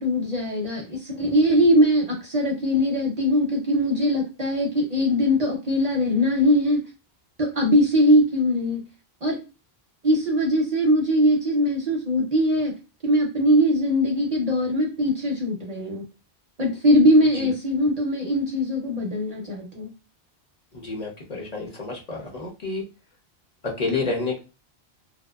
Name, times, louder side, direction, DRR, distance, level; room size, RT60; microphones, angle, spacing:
voice 1, 0.0-6.8 7.4-8.8 9.2-9.4 10.0-12.7 13.0-16.0 16.6-19.9, equal, 45° right, -1 dB, 0.6 m, -21 dB
voice 2, 20.8-22.8 23.8-24.4, left 3 dB, 45° left, -1 dB, 0.7 m, -29 dB
2.6 x 2.1 x 2.2 m, 0.30 s
omnidirectional pair, 1.1 m